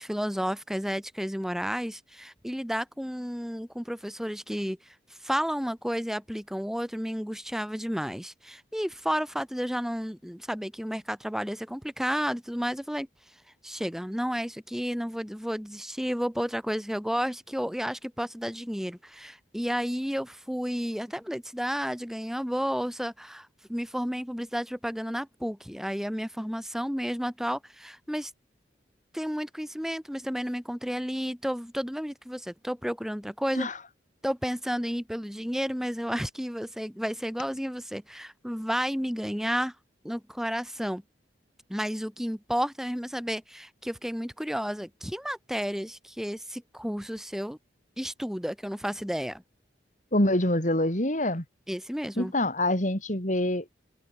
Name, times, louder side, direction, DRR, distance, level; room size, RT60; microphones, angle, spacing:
voice 1, 0.0-4.8 5.2-13.1 13.6-28.3 29.1-33.7 34.2-39.7 40.0-41.0 41.7-47.6 48.0-49.4 51.7-52.3, equal, ahead, 8.0 m, -32 dB
voice 2, 50.1-51.4 52.2-53.7, left 1 dB, 45° left, 4.8 m, -25 dB
head